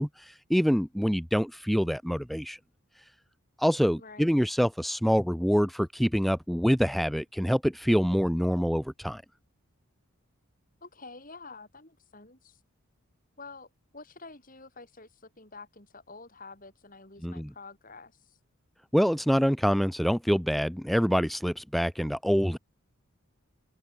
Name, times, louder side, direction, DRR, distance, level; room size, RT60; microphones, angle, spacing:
voice 1, 0.0-2.6 3.0-3.1 3.6-9.2 17.2-17.5 18.9-22.6, equal, ahead, 0.4 m, -26 dB
voice 2, 4.0-4.4 10.8-12.6 13.4-18.4, left 3 dB, 40° left, 4.0 m, -48 dB
head